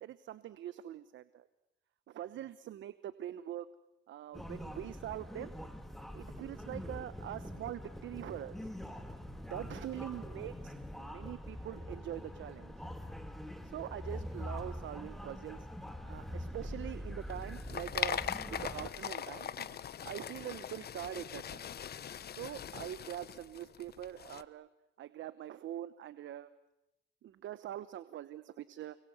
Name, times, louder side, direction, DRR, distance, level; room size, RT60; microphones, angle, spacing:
voice 1, 0.0-1.5 2.1-3.7 4.1-5.6 6.1-8.7 9.5-12.7 13.6-15.7 16.1-21.7 22.3-24.7 25.0-26.5 27.2-29.0, right 12 dB, 75° right, 14 dB, 1.0 m, -44 dB
sound 1, 4.3-18.9, left 1 dB, ahead, 3.0 m, -44 dB
sound 2, 17.2-24.4, left 9 dB, 55° left, 1.0 m, -41 dB
29.5 x 22.5 x 8.1 m, 0.91 s
cardioid pair, 90°, 20 cm